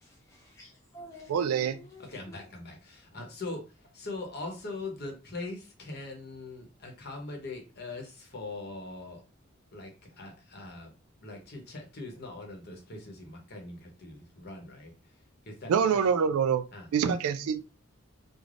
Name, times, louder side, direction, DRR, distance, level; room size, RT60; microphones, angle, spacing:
voice 1, 0.0-2.4, left 1 dB, 15° left, 0.3 m, -51 dB
voice 2, 1.3-1.8 15.7-16.6 16.9-17.6, right 7 dB, 80° right, 0.3 m, -25 dB
voice 3, 2.0-9.2 9.7-10.9 11.2-15.2 15.4-16.0 16.7-16.9, left 2 dB, 45° left, 0.8 m, -41 dB
3.3 x 2.1 x 2.5 m
head